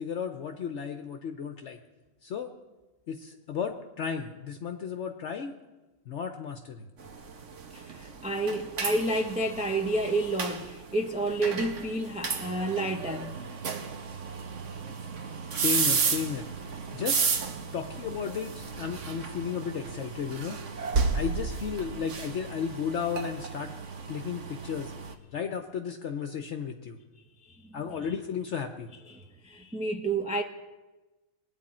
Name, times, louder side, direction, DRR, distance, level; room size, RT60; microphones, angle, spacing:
voice 1, 0.0-1.8 2.2-2.5 3.1-5.6 6.1-6.9 15.5-17.2 17.7-20.6 21.1-23.7 24.1-24.9 25.3-27.0 27.7-28.9, left 7 dB, 65° left, 1.0 m, -34 dB
sound 1, 7.0-25.1, right 5 dB, 65° right, 1.3 m, -33 dB
voice 2, 7.7-13.3 27.6-27.8 29.1-30.4, right 2 dB, 10° right, 0.5 m, -30 dB
21.0 x 9.0 x 4.3 m
omnidirectional pair, 1.4 m